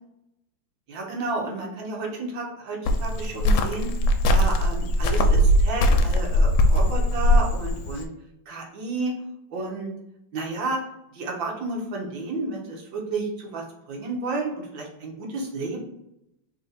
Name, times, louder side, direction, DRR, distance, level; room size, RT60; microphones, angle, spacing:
voice 1, 0.9-3.9 4.3-8.1 8.5-9.1 9.5-9.9 10.3-10.8 11.1-15.8, right 3 dB, 70° right, -1 dB, 1.7 m, -31 dB
Cricket, 2.9-8.0, equal, 75° left, 1.3 m, -20 dB
3.6 x 2.7 x 4.0 m, 0.83 s
omnidirectional pair, 2.2 m